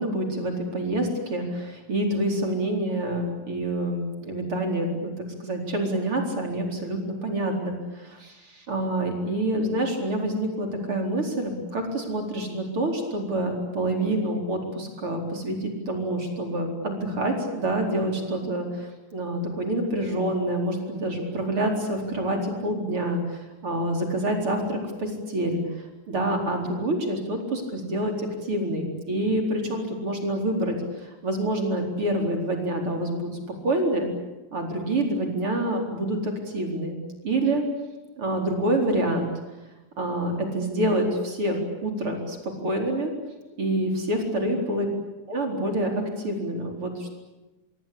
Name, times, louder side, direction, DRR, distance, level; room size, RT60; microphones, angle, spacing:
voice 1, 0.0-25.6 26.1-33.3 33.6-34.1 34.5-37.0 37.2-37.6 38.2-39.3 40.0-42.4 42.6-43.1 43.6-44.9 45.3-47.1, right 1 dB, 35° right, 2 dB, 4.9 m, -27 dB
25.0 x 24.5 x 8.7 m, 1.1 s
omnidirectional pair, 4.4 m